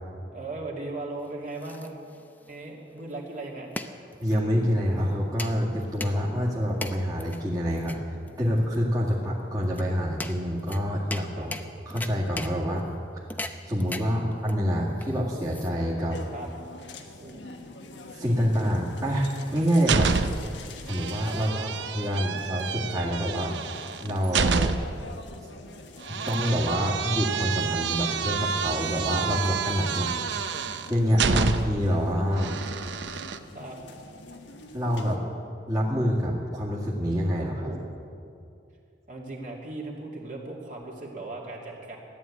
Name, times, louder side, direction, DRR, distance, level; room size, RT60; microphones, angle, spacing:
voice 1, 0.3-2.0 2.5-3.8 11.3-11.5 14.0-14.3 16.3-16.5 17.2-17.4 21.3-21.7 24.5-24.7 29.9-30.3 31.3-31.5 33.5-33.8 37.6-38.2 39.1-42.0, right 2 dB, 45° right, -2 dB, 2.5 m, -38 dB
sound 1, 1.2-16.1, left 2 dB, 10° left, 0.6 m, -41 dB
voice 2, 4.2-8.0 8.4-11.5 11.9-12.8 13.7-16.2 18.1-20.1 20.8-21.6 21.9-23.5 24.0-24.7 26.2-30.2 30.9-32.5 34.7-35.2 35.7-37.7, equal, 20° right, -6 dB, 2.0 m, -26 dB
sound 2, 16.1-35.2, left 2 dB, 80° left, 1.4 m, -45 dB
sound 3, 19.3-20.6 20.9-25.0 26.0-31.9 32.4-33.4, right 5 dB, 80° right, 0.7 m, -29 dB
14.5 x 11.0 x 8.6 m, 2.4 s
head